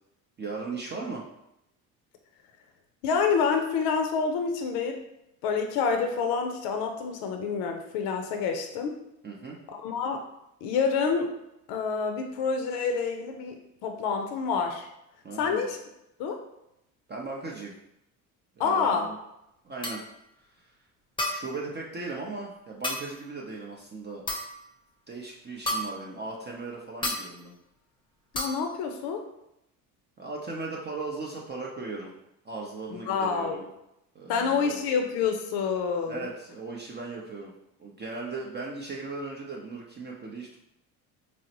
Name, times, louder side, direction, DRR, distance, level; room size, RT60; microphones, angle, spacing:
voice 1, 0.4-1.2 9.2-9.6 15.2-15.6 17.1-17.7 18.6-19.1 19.6-20.0 21.3-24.2 25.1-27.5 30.2-32.1 32.4-33.7 34.1-34.8 36.1-37.5 37.8-40.6, right 3 dB, 25° right, -2 dB, 0.5 m, -37 dB
voice 2, 3.0-5.0 5.4-8.9 9.7-10.2 10.6-11.3 11.7-14.9 15.3-15.8 16.2-16.4 18.6-19.1 28.3-29.2 32.9-33.6 34.3-36.3, left 5 dB, 65° left, 5 dB, 0.6 m, -28 dB
sound 1, 19.8-20.1 21.2-21.6 22.8-23.1 24.3-24.7 25.7-26.1 27.0-27.3 28.3-28.7, left 1 dB, 10° left, 0.7 m, -31 dB
3.9 x 2.1 x 2.8 m, 0.83 s
hypercardioid pair, 75°, 42 cm